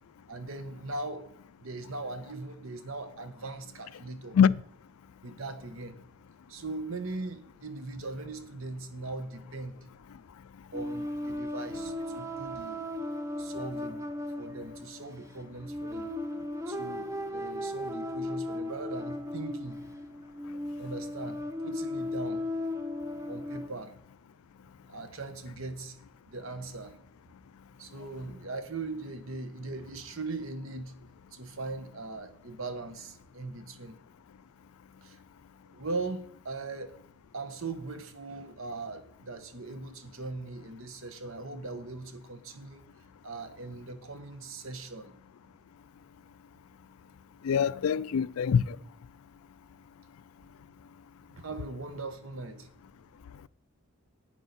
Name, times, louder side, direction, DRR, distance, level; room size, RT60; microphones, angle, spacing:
voice 1, 0.3-1.3 1.6-4.4 5.2-6.0 6.5-9.8 10.7-12.8 13.4-14.0 14.4-16.1 16.7-19.8 20.8-22.4 23.3-24.0 24.9-26.0 26.3-27.0 27.8-30.9 31.3-34.0 35.0-35.2 35.7-37.0 37.3-42.8 43.2-45.1 51.3-52.7, right 3 dB, 65° right, 1.1 m, -40 dB
sound 1, 10.7-23.7, left 1 dB, 15° right, 0.6 m, -36 dB
voice 2, 47.4-48.8, left 7 dB, 75° left, 0.4 m, -24 dB
11.0 x 9.2 x 4.1 m
head